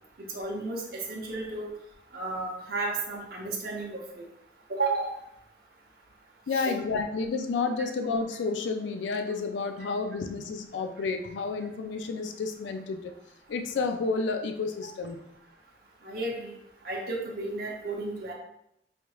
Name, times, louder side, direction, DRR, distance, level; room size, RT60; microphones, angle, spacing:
voice 1, 0.2-1.7 2.1-4.2 4.7-5.1 6.5-6.7 16.0-16.6 16.8-18.3, right 3 dB, 55° right, -2 dB, 0.7 m, -33 dB
voice 2, 6.5-13.1 13.5-15.2, left 4 dB, 85° left, 6 dB, 0.4 m, -30 dB
4.9 x 3.0 x 2.3 m, 0.77 s
head